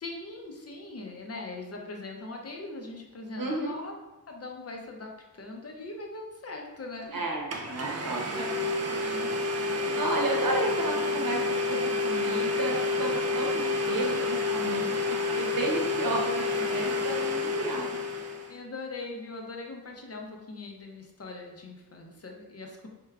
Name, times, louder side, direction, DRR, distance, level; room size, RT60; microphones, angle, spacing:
voice 1, 0.0-3.9 4.3-7.2 8.0-8.1 9.0-9.3 18.5-22.9, left 2 dB, 40° left, 1 dB, 0.6 m, -41 dB
voice 2, 3.3-3.8 7.1-8.5 10.0-18.0, right 2 dB, 60° right, -1 dB, 0.9 m, -33 dB
Domestic sounds home sounds, 7.0-7.1 7.5-18.6, left 3 dB, 40° right, 0.4 m, -29 dB
4.5 x 3.3 x 2.3 m, 1.0 s
wide cardioid pair, 135°, 38 cm